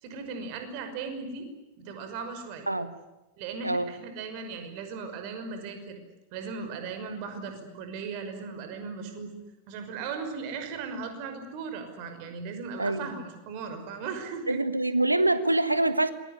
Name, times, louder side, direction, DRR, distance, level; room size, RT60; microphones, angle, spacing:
voice 1, 0.0-1.5 1.8-2.7 3.4-6.0 6.3-9.3 9.7-14.6, right 5 dB, 45° right, 7 dB, 5.7 m, -37 dB
voice 2, 12.8-13.1 14.5-16.1, right 2 dB, 85° right, 13 dB, 1.6 m, -25 dB
27.0 x 22.5 x 9.8 m, 0.98 s
figure-of-eight pair, 90°, 0 cm